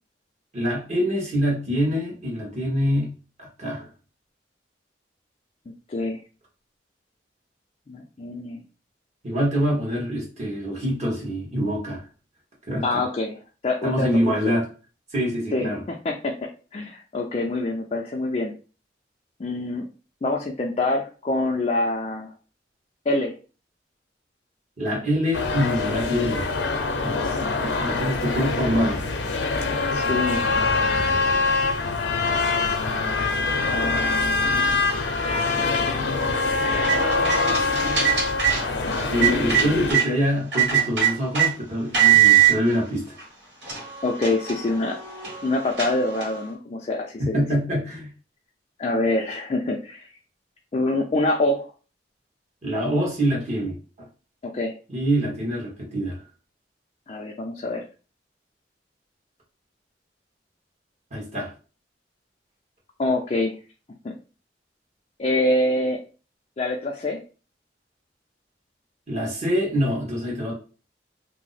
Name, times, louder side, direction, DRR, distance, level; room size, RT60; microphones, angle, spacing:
voice 1, 0.5-3.1 3.4-3.9 9.2-12.0 12.7-13.0 13.8-14.7 15.1-15.8 24.8-26.5 27.0-29.0 39.1-43.2 47.2-48.1 52.6-53.8 54.9-56.2 61.1-61.5 69.1-70.5, equal, 40° right, -3 dB, 1.2 m, -25 dB
voice 2, 5.9-6.2 7.9-8.6 12.8-14.3 15.5-15.7 16.0-16.3 16.7-18.5 19.4-19.9 20.2-22.3 23.1-23.3 27.1-27.8 29.9-30.4 31.0-31.2 33.7-34.6 39.2-39.7 44.0-45.0 45.4-47.4 48.8-50.1 50.7-51.7 54.4-54.7 57.1-57.8 63.0-63.5 64.0-64.1 65.2-66.0 66.6-67.2, left 2 dB, 35° left, 0 dB, 0.4 m, -26 dB
sound 1, 25.3-39.9, left 3 dB, 90° left, 0.5 m, -24 dB
sound 2, 36.6-40.1 40.5-41.5 41.9-42.5 43.2-43.3 43.6-46.4, right 10 dB, 75° right, 1.5 m, -22 dB
2.8 x 2.0 x 3.9 m, 0.36 s
head